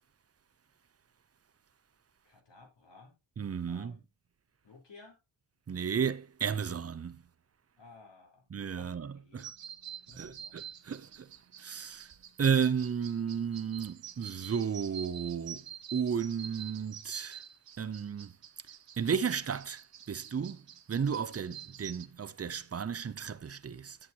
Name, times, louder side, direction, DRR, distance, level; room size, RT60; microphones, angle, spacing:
voice 1, 2.2-3.2 3.7-4.0 4.6-5.2 7.8-8.5 8.8-9.5 10.1-10.6, left 3 dB, 60° left, 3.9 m, -56 dB
voice 2, 3.4-3.9 5.7-7.2 8.5-9.5 10.1-11.3 11.6-12.1 12.4-15.6 15.9-17.4 17.8-18.3 19.0-19.8 20.1-20.6 20.9-24.0, right 7 dB, 30° right, 0.5 m, -33 dB
sound 1, 9.4-22.1, right 9 dB, 65° right, 0.8 m, -47 dB
11.0 x 7.6 x 2.8 m
wide cardioid pair, 135°, 48 cm